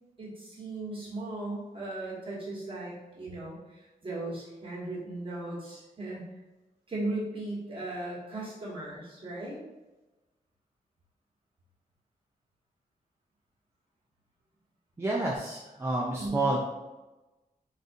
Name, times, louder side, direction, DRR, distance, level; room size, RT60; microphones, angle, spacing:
voice 1, 0.2-6.2 6.9-9.6 16.2-16.5, right 2 dB, 35° right, -6 dB, 1.2 m, -37 dB
voice 2, 15.0-16.6, right 2 dB, 15° right, -4 dB, 0.3 m, -29 dB
4.0 x 2.4 x 2.5 m, 1.1 s
wide cardioid pair, 170°, 16 cm